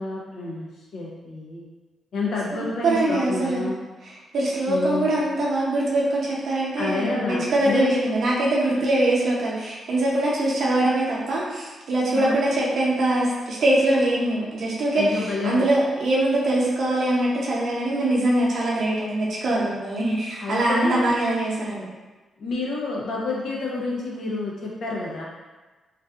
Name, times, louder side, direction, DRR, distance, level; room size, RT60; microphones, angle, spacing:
voice 1, 0.0-1.7 2.1-3.8 4.7-5.1 6.8-7.9 12.1-12.3 14.9-15.7 20.4-21.1 22.4-25.2, left 2 dB, 70° left, -4 dB, 0.6 m, -29 dB
voice 2, 2.5-3.6 4.3-15.1 15.4-21.9, right 1 dB, 65° right, -5 dB, 0.7 m, -23 dB
2.5 x 2.3 x 2.4 m, 1.2 s
cardioid pair, 70°, 0 cm